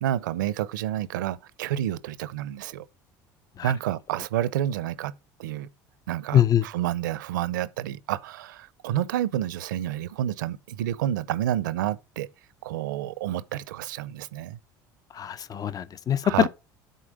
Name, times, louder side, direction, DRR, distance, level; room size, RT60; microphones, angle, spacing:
voice 1, 0.0-2.9 3.6-5.1 5.4-5.7 6.1-12.3 12.6-14.6 16.2-16.5, right 12 dB, 90° right, 0.7 m, -29 dB
voice 2, 6.3-6.6 15.1-16.5, left 10 dB, 40° left, 0.8 m, -23 dB
10.0 x 4.3 x 5.2 m
hypercardioid pair, 80°, 10 cm